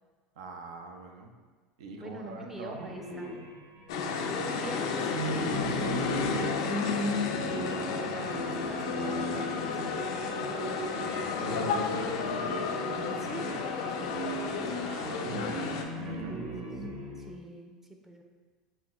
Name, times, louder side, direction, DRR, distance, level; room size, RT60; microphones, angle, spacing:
voice 1, 0.4-1.3 1.8-2.9 7.4-8.2 11.0-12.2 14.7-16.4, right 3 dB, 85° right, 3 dB, 0.4 m, -44 dB
voice 2, 1.9-3.3 4.4-6.8 7.9-9.7 12.7-14.3 14.6-14.9 16.4-16.7 17.2-18.2, right 1 dB, 10° right, 3 dB, 0.4 m, -45 dB
sound 1, 2.7-17.3, right 1 dB, 65° right, 0.9 m, -37 dB
sound 2, 3.9-15.8, left 5 dB, 80° left, 0.3 m, -32 dB
5.6 x 2.1 x 2.3 m, 1.4 s
supercardioid pair, 105°, 3 cm